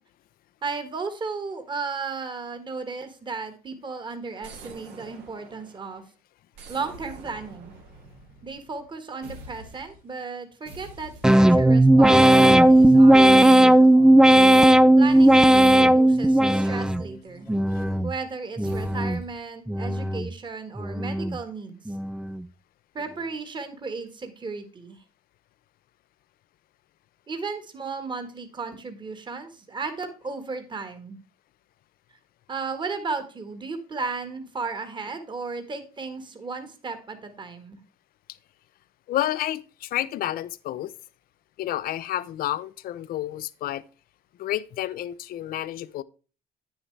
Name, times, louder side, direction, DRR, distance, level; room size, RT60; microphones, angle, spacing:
voice 1, 0.6-6.0 6.7-7.7 8.4-14.2 15.0-17.5 18.0-21.8 22.9-25.0 27.3-31.2 32.5-37.8, right 4 dB, 25° right, 1.5 m, -35 dB
sound 1, 4.4-6.0 6.5-8.9 9.2-10.1 10.6-11.7 12.4-14.3 15.0-17.4 18.6-19.4, right 2 dB, 80° right, 2.2 m, -47 dB
sound 2, 11.2-17.1 17.5-18.1 18.6-19.2 19.7-20.3 20.8-21.4 21.9-22.4, right 1 dB, 5° right, 0.3 m, -16 dB
voice 2, 39.1-40.9 41.6-43.8 44.4-46.0, left 13 dB, 60° left, 0.5 m, -30 dB
9.0 x 7.2 x 3.3 m
cardioid pair, 110°, 17 cm